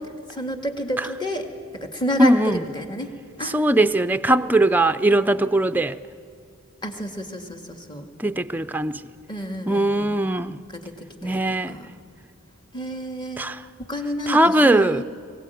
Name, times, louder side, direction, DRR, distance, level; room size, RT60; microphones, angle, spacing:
voice 1, 0.3-1.5 1.7-3.1 3.4-3.6 4.3-4.5 6.8-8.1 9.3-10.1 10.7-11.4 11.7-11.9 12.7-13.5 13.8-15.0, left 1 dB, 20° left, 1.8 m, -30 dB
voice 2, 2.2-2.6 3.4-6.0 8.2-9.0 9.7-10.6 11.2-11.7 13.4-13.6 14.3-15.0, right 1 dB, 10° right, 0.5 m, -20 dB
22.5 x 16.5 x 9.2 m
head